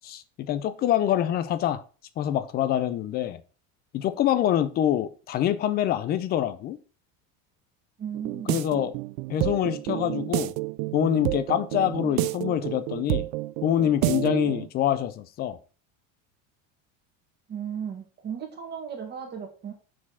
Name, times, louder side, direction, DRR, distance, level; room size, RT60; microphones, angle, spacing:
voice 1, 0.0-1.8 2.2-3.4 3.9-6.8 8.5-8.9 9.3-10.5 10.9-13.3 13.6-15.6, left 11 dB, 25° left, 0.4 m, -25 dB
voice 2, 8.0-8.6 17.5-19.7, right 8 dB, 25° right, 1.8 m, -35 dB
sound 1, 8.1-14.7, right 21 dB, 85° right, 0.5 m, -29 dB
7.4 x 4.3 x 5.6 m
cardioid pair, 175°, 40 cm